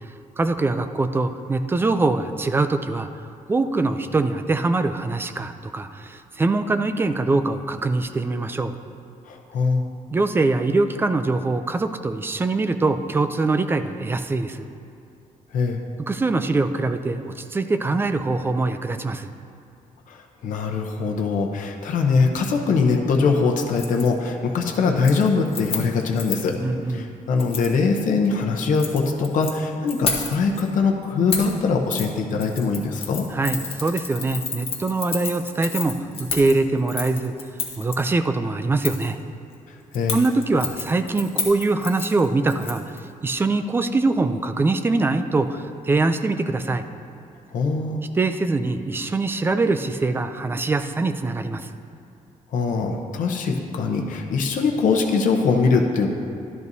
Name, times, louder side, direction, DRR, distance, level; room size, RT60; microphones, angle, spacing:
voice 1, 0.4-3.1 3.5-8.7 10.1-14.7 16.1-19.3 26.6-27.1 33.3-37.3 37.8-39.2 40.1-42.8 43.2-46.8 48.2-51.7, right 3 dB, 15° right, 9 dB, 0.3 m, -23 dB
voice 2, 9.3-9.8 15.5-15.8 20.1-26.6 26.9-33.3 39.7-40.2 47.5-48.0 52.5-56.1, left 4 dB, 80° left, 2 dB, 0.8 m, -22 dB
Keys jangling, 23.7-24.1 24.4-24.7 25.0-26.5 27.4-27.7 28.6-29.5 29.9-30.6 31.3-31.6 31.9-32.1 32.4-38.0 38.8-39.1 39.9-43.0 43.3-43.4, left 5 dB, 45° left, 1.1 m, -31 dB
12.0 x 11.0 x 2.7 m, 2.7 s
wide cardioid pair, 180°, 13 cm